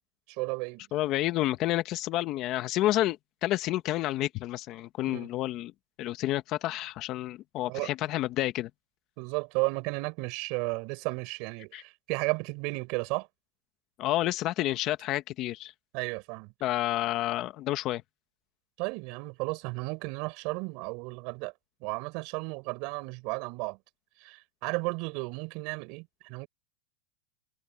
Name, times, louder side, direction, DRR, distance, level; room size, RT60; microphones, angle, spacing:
voice 1, 0.3-0.9 5.1-5.3 7.7-7.9 9.2-13.3 15.9-16.5 18.8-21.5 21.8-23.8 24.2-26.5, right 28 dB, 50° right, 4.8 m, -33 dB
voice 2, 0.9-5.7 6.0-8.7 11.7-11.8 14.0-15.7 16.6-18.0, left 15 dB, 40° left, 1.3 m, -29 dB
supercardioid pair, 140°, 0 cm